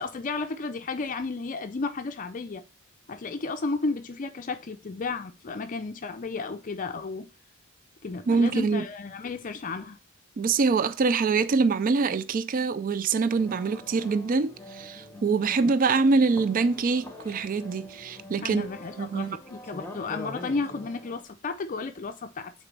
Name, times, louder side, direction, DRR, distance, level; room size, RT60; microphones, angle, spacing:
voice 1, 0.0-2.6 3.1-7.3 8.0-10.0 18.4-22.5, left 4 dB, 40° left, 0.5 m, -33 dB
voice 2, 8.3-8.9 10.4-18.7 19.0-19.4, right 4 dB, 40° right, 0.4 m, -24 dB
sound 1, 13.1-21.2, left 1 dB, 10° left, 1.0 m, -44 dB
8.9 x 4.2 x 3.2 m
head